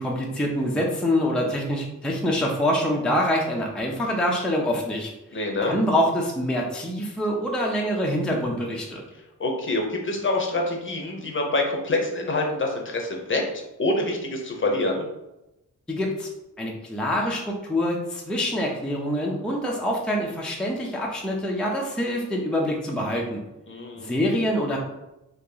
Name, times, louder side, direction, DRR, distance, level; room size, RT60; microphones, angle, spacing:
voice 1, 0.0-9.0 15.9-16.3 16.6-23.4 24.0-24.8, equal, 5° left, -1 dB, 0.4 m, -25 dB
voice 2, 5.3-5.7 9.4-13.4 13.8-15.1 23.7-24.2, left 2 dB, 40° left, 1 dB, 0.6 m, -26 dB
2.9 x 2.8 x 3.8 m, 0.93 s
wide cardioid pair, 135°, 31 cm